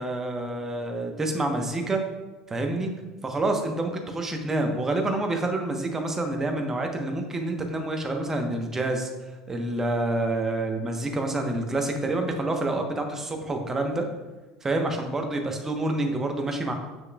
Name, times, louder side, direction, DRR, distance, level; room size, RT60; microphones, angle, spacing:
voice 1, 0.0-2.0 2.5-2.9 3.2-9.1 9.5-14.0 14.6-16.7, right 2 dB, 20° right, 4 dB, 1.1 m, -27 dB
7.1 x 6.7 x 2.4 m, 1.2 s
figure-of-eight pair, 65°, 2 cm